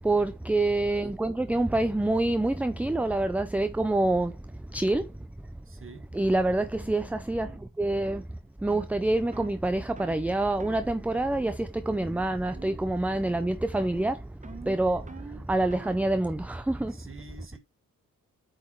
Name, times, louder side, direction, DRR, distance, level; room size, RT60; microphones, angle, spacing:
voice 1, 0.0-5.3 6.1-17.0, right 2 dB, 5° right, 0.3 m, -27 dB
voice 2, 5.7-6.1 15.0-15.1 16.9-17.6, right 4 dB, 40° right, 1.2 m, -47 dB
sound 1, 6.1-6.3 6.8-7.0 7.4-7.6 8.0-8.3 8.7-8.9 9.3-9.6 10.0-10.2 10.6-10.8 11.2-11.6 11.9-12.2 12.5-12.9 13.2-13.5 13.8-16.1, right 3 dB, 25° right, 0.8 m, -46 dB
8.4 x 3.9 x 3.1 m
cardioid pair, 85°, 32 cm